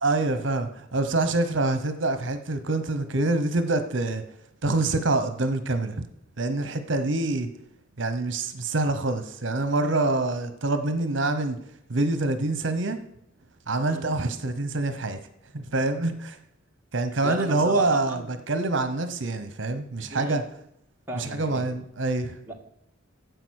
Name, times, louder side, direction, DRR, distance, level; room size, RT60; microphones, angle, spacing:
voice 1, 0.0-4.2 4.6-6.1 6.4-7.5 8.0-11.6 11.9-13.0 13.7-15.2 15.5-16.4 16.9-20.4 21.1-22.4, right 2 dB, 65° right, 10 dB, 1.0 m, -26 dB
voice 2, 17.2-18.3 20.1-20.4 21.1-21.6 22.5-22.6, right 1 dB, 10° right, 0 dB, 1.7 m, -36 dB
14.0 x 8.1 x 6.4 m, 0.76 s
head